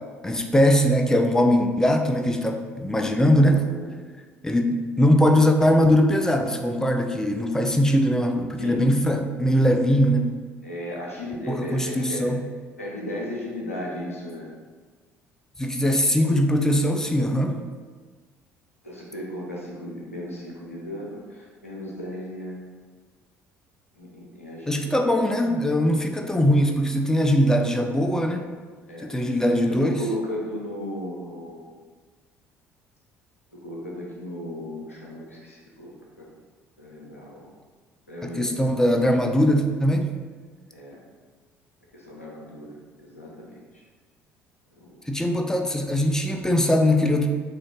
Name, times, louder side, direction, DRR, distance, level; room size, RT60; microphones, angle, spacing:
voice 1, 0.2-3.6 4.4-10.3 11.5-12.4 15.6-17.6 24.7-28.5 29.0-30.0 38.2-40.1 45.1-47.3, equal, 5° left, 5 dB, 0.4 m, -21 dB
voice 2, 3.2-3.9 8.6-8.9 10.6-12.3 12.8-14.5 18.8-22.6 24.0-25.2 28.9-31.8 33.5-36.3 36.8-37.5 38.1-38.7 40.7-41.0 41.9-43.6 44.8-45.0, left 1 dB, 85° left, -3 dB, 0.6 m, -36 dB
3.6 x 2.5 x 3.5 m, 1.5 s
figure-of-eight pair, 55°, 7 cm